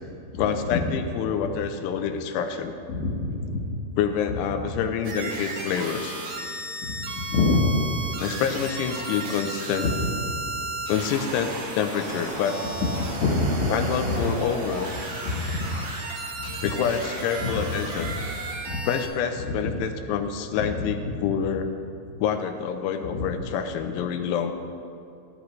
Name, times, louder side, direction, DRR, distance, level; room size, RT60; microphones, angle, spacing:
voice 1, 0.4-2.8 4.0-6.2 8.2-9.9 10.9-12.6 13.7-15.0 16.5-18.2 18.9-21.7 22.2-24.5, left 7 dB, 90° left, 6 dB, 2.8 m, -27 dB
voice 2, 2.9-3.6 4.6-4.7 6.8-7.8 9.8-9.9 13.2-13.7 14.1-14.2 15.2-15.7 16.4-16.7 17.4-17.7 18.0-18.1 18.7-18.8 19.4-19.7 20.6-20.7 21.1-21.2 23.1-23.3, left 3 dB, 60° left, -6 dB, 2.2 m, -26 dB
sound 1, 5.0-19.0, right 2 dB, 65° right, 1.5 m, -34 dB
13.0 x 13.0 x 3.2 m, 2.5 s
omnidirectional pair, 4.7 m